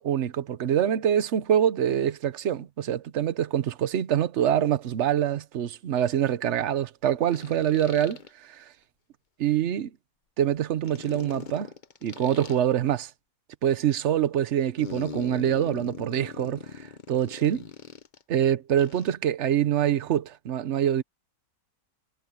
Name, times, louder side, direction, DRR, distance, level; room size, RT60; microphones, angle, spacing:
voice 1, 0.0-8.6 9.4-9.9 10.4-11.7 12.0-13.1 13.6-17.6 18.3-21.0, right 10 dB, 55° right, 1.0 m, -25 dB
sound 1, 4.7-4.8 7.2-8.3 10.8-12.6 14.8-18.2 18.8-19.1, left 6 dB, 35° left, 0.9 m, -40 dB
omnidirectional pair, 1.6 m